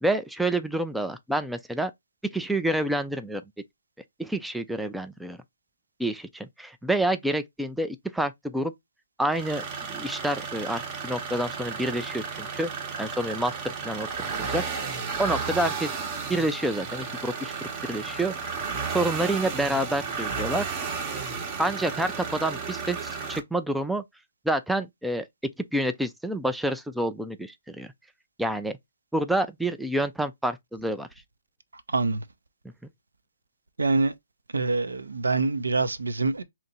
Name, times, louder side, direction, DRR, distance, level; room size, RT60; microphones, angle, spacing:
voice 1, 0.0-1.9 2.2-3.4 4.2-5.4 6.0-8.7 9.2-12.7 13.0-14.1 14.5-14.6 15.2-15.9 16.3-18.3 18.9-20.7 21.6-24.0 24.5-25.3 25.7-27.9 28.4-28.8 29.1-31.1, right 1 dB, ahead, 0.3 m, -28 dB
sound 1, 9.3-23.4, right 5 dB, 30° right, 0.8 m, -33 dB
voice 2, 33.8-34.1 34.5-36.4, right 3 dB, 80° right, 0.5 m, -25 dB
2.9 x 2.5 x 4.1 m
figure-of-eight pair, 140°, 0 cm